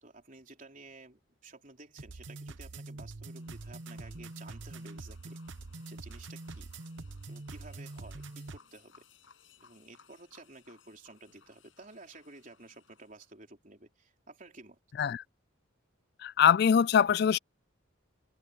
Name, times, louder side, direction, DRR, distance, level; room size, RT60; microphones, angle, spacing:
voice 1, 0.0-5.4 5.9-6.7 7.3-9.0 9.6-14.8, right 3 dB, 40° right, 3.6 m, -53 dB
sound 1, 2.0-8.6, right 2 dB, 65° right, 1.1 m, -44 dB
sound 2, 3.3-13.4, left 6 dB, 75° left, 7.3 m, -64 dB
voice 2, 16.2-17.4, left 8 dB, 55° left, 0.3 m, -23 dB
head